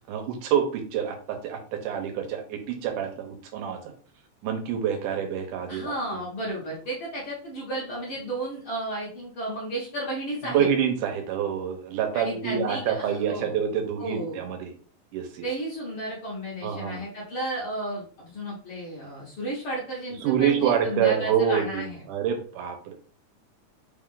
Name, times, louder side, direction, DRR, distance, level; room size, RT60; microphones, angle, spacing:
voice 1, 0.1-3.8 4.4-5.9 10.4-14.7 15.1-15.5 16.6-17.0 20.2-22.9, right 8 dB, 85° right, 4 dB, 2.2 m, -27 dB
voice 2, 5.7-10.7 12.1-13.6 14.0-14.4 15.4-22.0, right 1 dB, 60° left, -5 dB, 1.5 m, -33 dB
5.1 x 2.4 x 3.6 m, 0.43 s
omnidirectional pair, 3.7 m